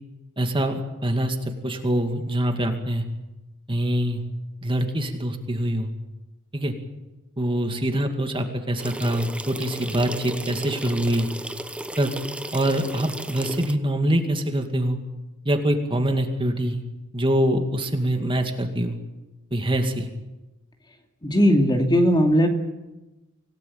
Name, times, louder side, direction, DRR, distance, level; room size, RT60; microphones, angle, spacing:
voice 1, 0.4-1.4 1.6-3.0 3.7-4.2 4.6-5.9 6.5-6.7 7.4-11.3 12.0-12.1 12.5-15.0 15.5-16.8 17.1-19.0 19.5-20.1, right 1 dB, 25° right, 5 dB, 2.3 m, -24 dB
sound 1, 8.8-13.8, right 1 dB, 5° right, 0.9 m, -35 dB
voice 2, 21.2-22.5, equal, 20° left, 4 dB, 2.5 m, -18 dB
26.0 x 17.5 x 8.7 m, 1.1 s
head